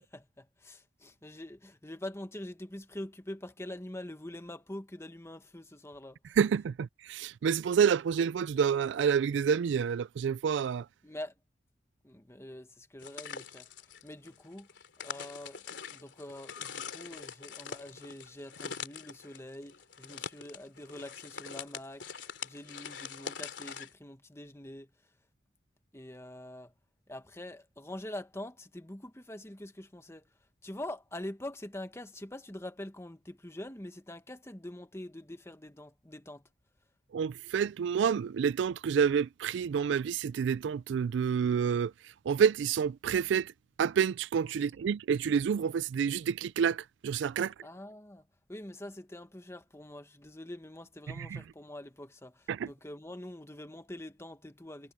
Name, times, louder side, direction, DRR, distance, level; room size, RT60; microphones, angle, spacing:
voice 1, 0.0-6.2 11.0-11.3 12.0-13.7 14.0-14.7 15.0-24.9 25.9-26.7 27.1-30.3 30.6-36.4 47.6-48.2 48.5-54.9, left 1 dB, 15° left, 1.5 m, -44 dB
voice 2, 6.4-10.9 37.1-41.9 42.3-43.5 43.8-47.5 51.1-51.4 52.5-52.7, right 7 dB, 80° right, 0.3 m, -28 dB
sound 1, 13.0-23.9, left 6 dB, 80° left, 3.0 m, -43 dB
head